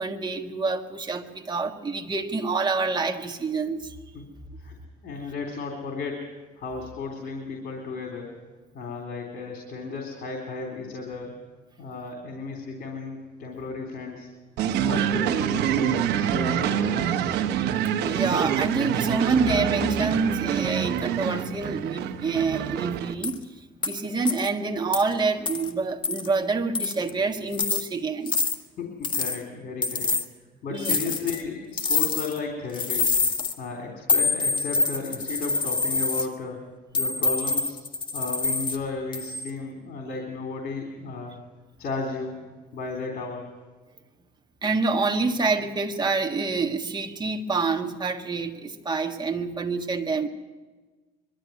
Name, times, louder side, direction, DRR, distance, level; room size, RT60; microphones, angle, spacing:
voice 1, 0.0-4.0 18.0-23.4 23.8-28.4 30.7-31.2 44.6-50.3, right 4 dB, 25° right, 5 dB, 1.7 m, -27 dB
voice 2, 5.0-6.2 6.6-8.4 8.7-11.3 11.8-14.3 14.7-17.3 28.8-30.1 30.6-33.1 33.6-36.6 36.9-37.7 38.1-41.4 41.8-42.4 42.7-43.5, left 4 dB, 65° left, 2 dB, 3.5 m, -34 dB
sound 1, 14.6-23.1, right 9 dB, 85° right, 1.1 m, -26 dB
sound 2, 23.2-23.4 23.8-23.9 24.2-24.5 24.9-25.0 25.5-25.7 26.0-26.3 26.7-27.1 27.5-27.8 28.3-28.6 29.0-29.4 29.8-30.2 30.8-31.4 31.8-32.4 32.7-33.5 34.1-36.3 36.9-38.8 39.1-39.5, left 3 dB, 30° left, 1.7 m, -26 dB
22.5 x 13.0 x 9.4 m, 1.3 s
cardioid pair, 110°, 17 cm